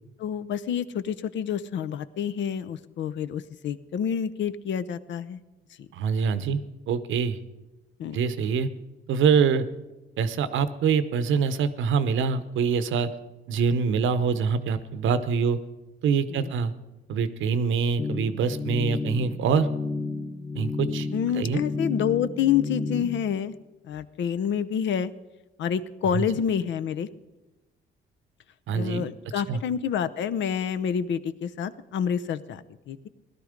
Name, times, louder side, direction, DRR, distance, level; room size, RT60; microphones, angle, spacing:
voice 1, 0.2-5.4 5.8-5.9 8.0-8.2 16.3-16.5 21.1-23.6 23.8-25.1 25.6-27.1 28.7-33.1, left 8 dB, 70° left, 12 dB, 0.7 m, -28 dB
voice 2, 5.9-6.6 6.9-7.4 8.1-8.7 9.1-9.7 10.2-13.1 13.5-15.6 16.0-16.7 17.1-19.7 20.5-21.1 21.4-21.6 26.1-26.3 28.7-29.0 29.5-29.6, right 6 dB, 75° right, 13 dB, 0.9 m, -24 dB
sound 1, 18.0-23.0, left 3 dB, 30° left, 1.3 m, -31 dB
17.0 x 12.0 x 5.1 m, 1.1 s
cardioid pair, 90°, 20 cm